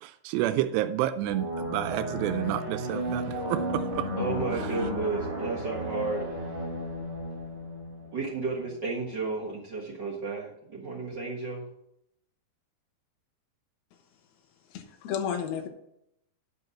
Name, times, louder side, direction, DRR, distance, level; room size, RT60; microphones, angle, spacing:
voice 1, 0.0-4.1, right 13 dB, 90° right, 9 dB, 2.7 m, -30 dB
sound 1, 1.3-8.7, equal, 35° right, 3.3 m, -34 dB
voice 2, 4.2-6.2 8.1-11.7, right 3 dB, 70° right, -5 dB, 1.0 m, -32 dB
voice 3, 14.7-15.7, left 8 dB, 75° left, 5 dB, 3.0 m, -32 dB
10.5 x 5.5 x 5.9 m, 0.77 s
omnidirectional pair, 4.8 m